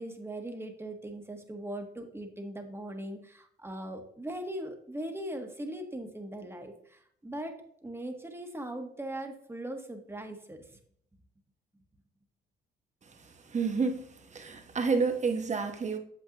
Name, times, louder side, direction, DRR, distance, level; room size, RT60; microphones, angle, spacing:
voice 1, 0.0-10.8, right 1 dB, 10° right, 1.4 m, -40 dB
voice 2, 13.5-16.0, right 4 dB, 35° right, 1.2 m, -30 dB
8.5 x 7.2 x 3.0 m
cardioid pair, 90°, 20 cm